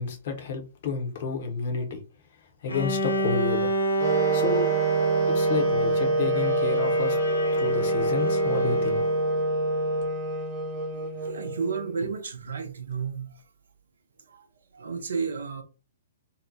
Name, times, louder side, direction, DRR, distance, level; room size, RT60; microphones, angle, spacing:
voice 1, 0.0-2.0 2.6-3.7 4.3-4.7 5.3-7.2 7.6-9.0, left 4 dB, 50° left, 0.8 m, -30 dB
Bowed string instrument, 2.7-9.4, right 1 dB, 75° left, 0.5 m, -29 dB
Wind instrument woodwind instrument, 4.0-12.0, right 2 dB, 20° right, 0.8 m, -26 dB
voice 2, 10.9-13.4 14.3-14.4 14.7-15.6, right 5 dB, 65° right, 0.5 m, -32 dB
2.7 x 2.1 x 2.6 m
figure-of-eight pair, 115°, 0 cm